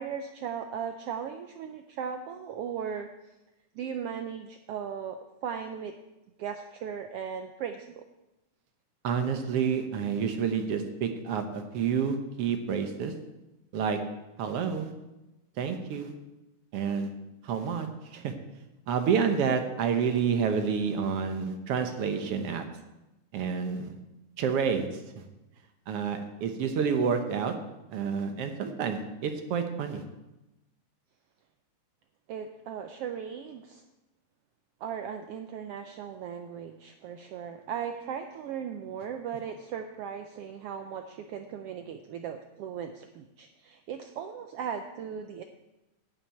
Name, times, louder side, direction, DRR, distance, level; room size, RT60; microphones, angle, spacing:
voice 1, 0.0-3.1 3.7-5.2 5.4-5.9 6.4-8.0 32.3-33.8 34.8-45.4, right 7 dB, 90° right, 7 dB, 1.3 m, -37 dB
voice 2, 9.0-13.1 13.7-14.0 14.4-14.9 15.6-16.1 16.7-17.1 17.4-17.9 18.1-18.3 18.9-22.6 23.3-23.9 24.4-25.2 25.9-27.5 27.9-30.0, right 6 dB, 60° right, 7 dB, 1.7 m, -29 dB
11.0 x 5.9 x 9.0 m, 0.99 s
omnidirectional pair, 3.4 m